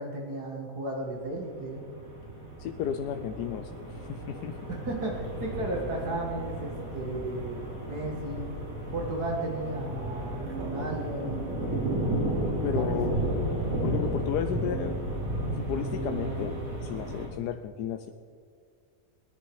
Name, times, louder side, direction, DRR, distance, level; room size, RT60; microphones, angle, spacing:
voice 1, 0.0-1.8 4.7-7.6 7.9-8.5 8.9-11.4 12.8-12.9 13.1-13.6, right 1 dB, 75° right, -1 dB, 2.4 m, -34 dB
sound 1, 1.4-17.3, right 1 dB, 55° right, 3.9 m, -33 dB
voice 2, 2.6-4.5 12.6-13.1 13.8-15.0 15.5-16.6 16.8-18.1, left 9 dB, 85° left, 7 dB, 1.2 m, -33 dB
20.0 x 10.5 x 4.7 m, 2.1 s
omnidirectional pair, 1.7 m